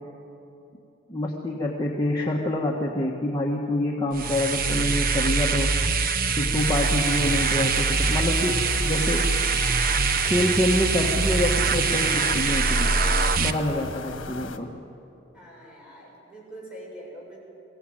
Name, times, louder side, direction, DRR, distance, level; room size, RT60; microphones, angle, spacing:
voice 1, 1.1-5.7 6.4-9.3 10.2-12.9 13.4-14.7, left 1 dB, 20° left, -2 dB, 1.5 m, -26 dB
sound 1, 4.1-13.5, right 4 dB, 45° right, 0.9 m, -23 dB
sound 2, 6.6-14.6, left 3 dB, 75° left, 1.6 m, -37 dB
voice 2, 15.3-17.4, right 1 dB, 5° right, -4 dB, 7.7 m, -43 dB
23.0 x 17.0 x 9.0 m, 2.8 s
head